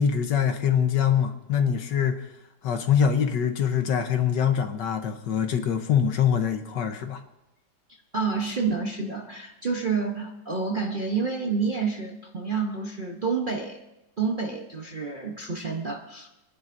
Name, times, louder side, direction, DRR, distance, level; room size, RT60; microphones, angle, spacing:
voice 1, 0.0-2.3 2.6-7.2, left 8 dB, 70° left, 7 dB, 1.5 m, -24 dB
voice 2, 7.9-13.8 14.2-16.3, right 5 dB, 40° right, 0 dB, 0.7 m, -29 dB
26.0 x 11.0 x 2.6 m, 0.92 s
omnidirectional pair, 2.1 m